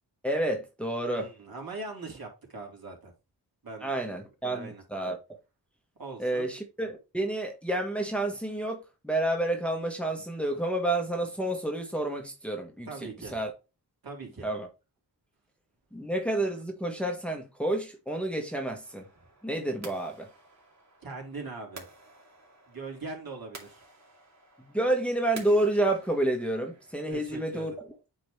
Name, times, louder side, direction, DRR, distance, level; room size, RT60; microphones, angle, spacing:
voice 1, 0.2-1.3 3.8-5.2 6.2-13.5 14.4-14.7 15.9-19.1 19.4-20.3 24.6-27.9, right 1 dB, 5° left, 1.5 m, -29 dB
voice 2, 1.1-3.1 3.6-4.2 4.5-4.8 6.0-6.5 12.9-13.4 14.0-14.5 21.0-21.9 22.7-23.8 27.1-27.7, right 3 dB, 55° right, 3.3 m, -41 dB
sound 1, 18.8-27.1, right 2 dB, 40° right, 2.5 m, -51 dB
8.7 x 4.0 x 3.3 m
wide cardioid pair, 70°, 41 cm